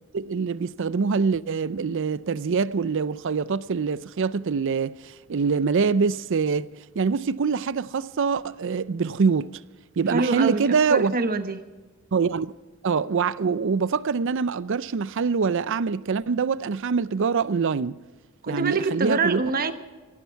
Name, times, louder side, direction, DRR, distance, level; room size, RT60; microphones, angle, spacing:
voice 1, 0.1-9.6 10.0-11.2 12.1-12.5 12.8-18.0 18.5-19.4, right 5 dB, 60° right, 0.5 m, -24 dB
voice 2, 10.1-11.6 18.4-19.7, right 3 dB, 45° right, 1.1 m, -25 dB
18.5 x 15.0 x 4.6 m
head